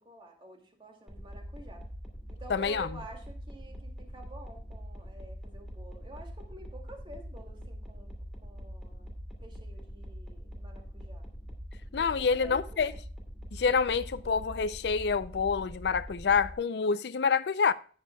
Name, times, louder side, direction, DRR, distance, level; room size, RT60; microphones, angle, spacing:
voice 1, 0.0-1.9 2.3-8.1 8.4-9.1 9.4-11.3 12.0-13.0, right 2 dB, 30° right, 2.5 m, -50 dB
sound 1, 1.1-16.5, equal, ahead, 2.3 m, -43 dB
voice 2, 2.5-2.9 11.9-12.9 13.5-17.7, left 5 dB, 70° left, 0.5 m, -27 dB
17.0 x 6.8 x 2.3 m
head